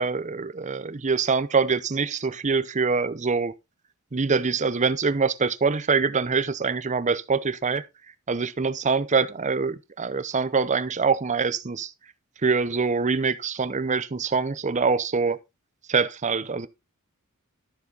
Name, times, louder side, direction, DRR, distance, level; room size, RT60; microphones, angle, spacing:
voice 1, 0.0-3.5 4.1-7.8 8.3-11.9 12.4-15.4 15.9-16.7, right 4 dB, 35° right, 0.7 m, -24 dB
12.5 x 6.9 x 3.9 m
head